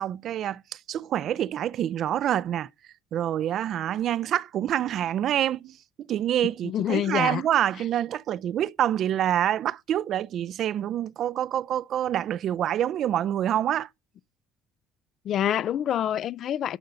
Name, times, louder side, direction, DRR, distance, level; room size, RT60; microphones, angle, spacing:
voice 1, 0.0-2.7 3.1-5.8 6.1-13.9, right 11 dB, 55° right, 0.4 m, -26 dB
voice 2, 6.6-7.4 15.2-16.8, left 10 dB, 55° left, 0.5 m, -26 dB
11.5 x 3.9 x 6.6 m
cardioid pair, 105°, 0 cm